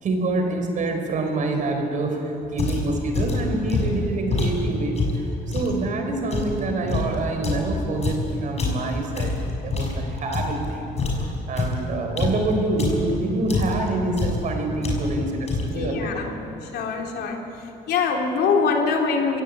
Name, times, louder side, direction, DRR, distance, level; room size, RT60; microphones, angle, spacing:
voice 1, 0.0-10.9 11.2-16.1, right 2 dB, 50° right, 4 dB, 5.0 m, -26 dB
sound 1, 2.6-5.8 6.3-10.7 11.0-13.2 13.5-13.9 14.2-14.5 14.8-15.2 15.5-15.9, left 3 dB, 40° left, 6.0 m, -26 dB
voice 2, 15.7-17.4 17.9-19.4, left 5 dB, 70° left, 1 dB, 3.4 m, -24 dB
26.5 x 17.0 x 8.7 m, 2.9 s
cardioid pair, 110°, 17 cm